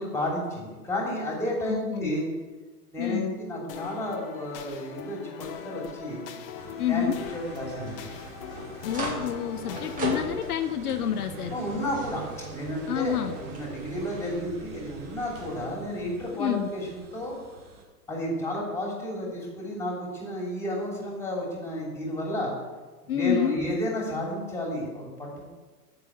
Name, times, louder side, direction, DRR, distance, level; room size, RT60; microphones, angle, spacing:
voice 1, 0.0-2.3 2.9-6.2 6.9-8.0 9.6-9.8 11.5-17.4 18.1-22.5 23.0-25.4, equal, 5° left, -2 dB, 3.1 m, -32 dB
voice 2, 1.7-2.1 3.0-3.4 6.8-7.2 8.8-11.6 12.9-13.4 16.3-16.7 23.1-23.6, left 10 dB, 70° left, 8 dB, 0.9 m, -28 dB
sound 1, 3.7-10.5, left 8 dB, 35° left, 1.0 m, -41 dB
sound 2, 4.7-14.4, right 2 dB, 15° right, 2.1 m, -40 dB
sound 3, 6.6-17.8, right 3 dB, 45° right, 2.8 m, -46 dB
8.8 x 6.7 x 8.2 m, 1.3 s
hypercardioid pair, 140°, 47 cm